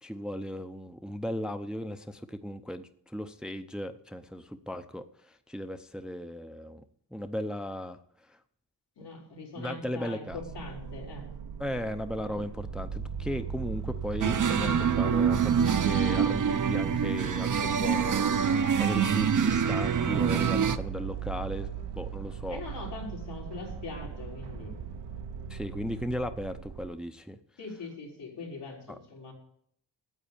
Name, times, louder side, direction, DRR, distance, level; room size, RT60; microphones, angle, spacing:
voice 1, 0.0-6.8 7.1-8.0 8.3-8.4 9.6-10.4 11.6-18.3 18.8-21.7 22.0-22.6 25.5-27.4 28.9-29.0, equal, ahead, 9 dB, 0.6 m, -36 dB
voice 2, 9.0-11.3 22.5-24.8 27.6-29.3, left 3 dB, 80° left, -1 dB, 4.1 m, -42 dB
sound 1, 10.3-26.9, right 6 dB, 90° right, 1.0 m, -38 dB
sound 2, 14.2-20.8, right 7 dB, 50° right, 0.7 m, -26 dB
9.3 x 8.0 x 8.8 m, 0.67 s
wide cardioid pair, 105°, 41 cm